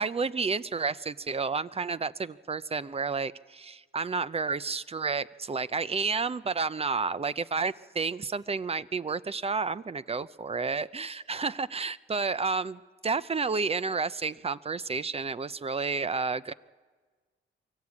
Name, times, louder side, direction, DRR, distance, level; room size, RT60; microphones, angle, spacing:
voice 1, 0.0-16.5, right 4 dB, 30° right, 16 dB, 0.6 m, -31 dB
23.5 x 14.5 x 8.4 m, 1.4 s
cardioid pair, 70°, 20 cm